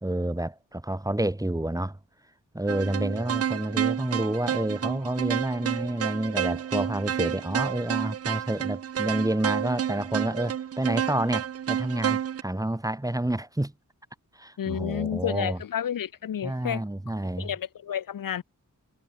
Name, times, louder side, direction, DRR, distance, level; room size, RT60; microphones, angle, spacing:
voice 1, 0.0-2.0 2.5-13.7 14.3-15.6 16.4-17.5, right 1 dB, 10° right, 1.4 m, -29 dB
sound 1, 2.7-12.4, right 9 dB, 50° right, 0.4 m, -30 dB
voice 2, 14.6-16.8 17.4-18.4, left 9 dB, 85° left, 0.8 m, -31 dB
wide cardioid pair, 90°, 33 cm